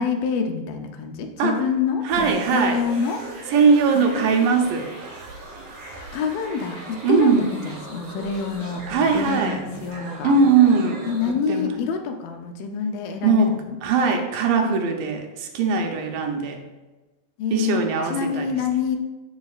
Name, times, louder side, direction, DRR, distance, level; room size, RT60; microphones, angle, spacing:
voice 1, 0.0-3.2 3.9-4.6 6.1-10.3 11.1-13.8 17.4-19.0, left 6 dB, 90° left, 4 dB, 2.6 m, -27 dB
sound 1, 2.1-11.3, right 2 dB, 60° right, 3.9 m, -39 dB
voice 2, 2.1-2.8 3.5-4.9 7.0-7.4 8.9-9.6 10.2-11.1 11.5-11.7 13.2-13.5 13.8-16.6 17.5-18.5, right 5 dB, 75° right, 3 dB, 2.5 m, -20 dB
14.0 x 5.3 x 2.4 m, 1.2 s
omnidirectional pair, 4.0 m